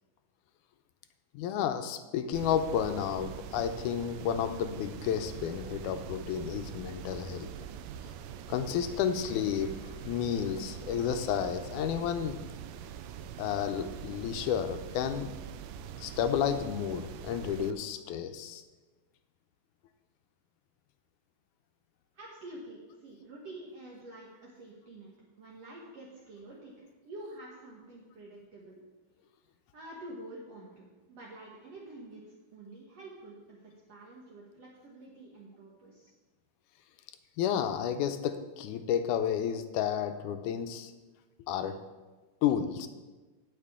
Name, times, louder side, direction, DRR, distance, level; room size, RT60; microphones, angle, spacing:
voice 1, 1.3-7.5 8.5-9.7 10.0-12.4 13.4-15.3 16.0-18.6 37.4-40.9 41.5-41.8 42.4-42.9, left 9 dB, 80° left, 8 dB, 2.0 m, -31 dB
sound 1, 2.3-17.7, right 9 dB, 85° right, 2.2 m, -43 dB
voice 2, 22.1-28.8 29.7-36.1, right 1 dB, 60° right, -4 dB, 2.2 m, -48 dB
17.0 x 5.9 x 3.6 m, 1.2 s
omnidirectional pair, 3.8 m